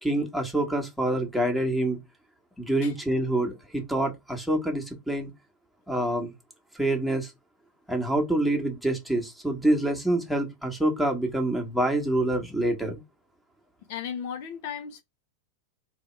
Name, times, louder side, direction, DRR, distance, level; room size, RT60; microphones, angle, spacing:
voice 1, 0.0-2.0 2.6-5.3 5.9-6.3 6.8-7.3 7.9-13.0, right 1 dB, ahead, 1.6 m, -26 dB
voice 2, 13.9-15.0, left 8 dB, 60° left, 0.7 m, -35 dB
3.4 x 3.0 x 4.6 m
hypercardioid pair, 95°, 0 cm